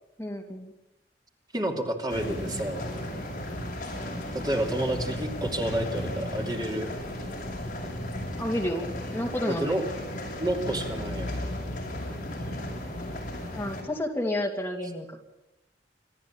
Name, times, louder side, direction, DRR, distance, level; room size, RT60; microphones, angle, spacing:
voice 1, 0.2-0.7 3.8-4.1 8.4-9.8 13.5-15.2, left 1 dB, 15° left, 1 dB, 2.7 m, -31 dB
voice 2, 1.5-2.8 4.3-6.9 9.5-9.8 10.4-11.3, right 1 dB, 25° right, 2 dB, 2.8 m, -30 dB
sound 1, 2.1-13.8, left 1 dB, 50° left, 7.8 m, -35 dB
27.0 x 14.0 x 8.8 m, 0.95 s
head